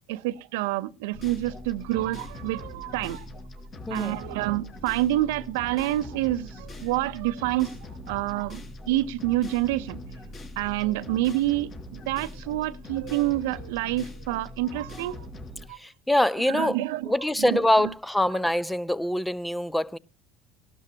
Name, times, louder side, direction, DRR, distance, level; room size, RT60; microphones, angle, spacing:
voice 1, 0.1-3.3 3.9-10.0 10.6-15.3 15.7-15.8 16.5-17.1 17.4-17.6, right 15 dB, 85° right, 0.7 m, -28 dB
sound 1, 1.1-15.7, left 1 dB, 45° left, 4.8 m, -41 dB
voice 2, 3.9-4.2 15.8-16.8 17.1-20.0, left 1 dB, 5° left, 0.5 m, -24 dB
17.5 x 12.5 x 2.9 m
supercardioid pair, 95°, 0 cm